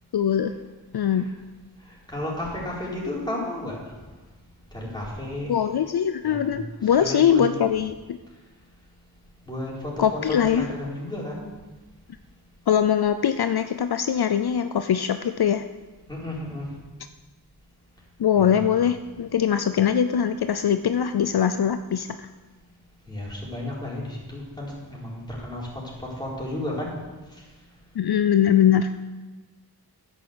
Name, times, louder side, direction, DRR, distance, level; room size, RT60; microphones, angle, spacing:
voice 1, 0.1-0.5 0.9-1.2 5.5-8.2 10.0-10.7 12.7-15.6 18.2-22.3 28.0-28.9, left 9 dB, 70° left, 10 dB, 0.5 m, -22 dB
voice 2, 2.1-3.8 4.7-5.5 6.2-6.5 7.0-7.4 9.4-11.5 16.1-16.7 18.3-18.6 23.1-25.7 26.0-27.0, left 1 dB, 10° left, -6 dB, 4.1 m, -33 dB
10.5 x 6.4 x 6.8 m, 1.2 s
wide cardioid pair, 45°, 39 cm